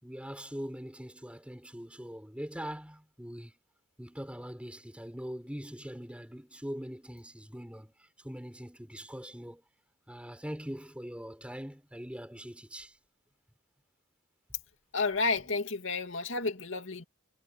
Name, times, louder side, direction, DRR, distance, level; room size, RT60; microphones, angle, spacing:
voice 1, 0.0-3.6 4.0-9.6 10.1-13.0, equal, 5° right, 5.6 m, -42 dB
voice 2, 14.9-17.0, left 3 dB, 70° left, 2.4 m, -31 dB
head